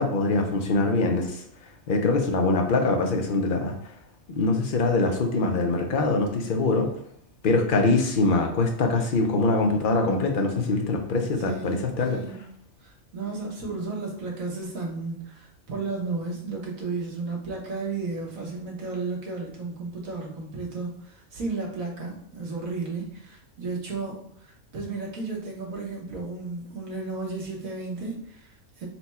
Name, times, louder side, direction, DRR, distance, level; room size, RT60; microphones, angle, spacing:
voice 1, 0.0-1.4 1.9-3.7 4.3-6.9 7.4-12.2, left 3 dB, 55° left, 3 dB, 0.6 m, -23 dB
voice 2, 11.4-12.4 12.8-28.9, right 3 dB, 75° right, -2 dB, 1.5 m, -33 dB
4.3 x 2.2 x 4.1 m, 0.67 s
omnidirectional pair, 1.4 m